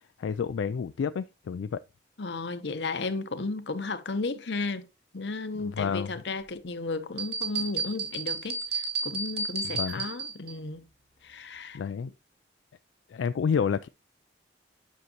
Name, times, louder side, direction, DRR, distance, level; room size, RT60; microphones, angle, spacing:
voice 1, 0.2-1.8 5.6-6.1 9.7-10.0 11.7-12.1 13.1-13.9, left 6 dB, 85° left, 0.3 m, -29 dB
voice 2, 2.2-4.9 5.1-10.8 11.2-11.8, left 3 dB, 70° left, 0.9 m, -34 dB
sound 1, 7.2-10.5, right 4 dB, 55° right, 2.2 m, -32 dB
9.4 x 6.4 x 2.9 m
head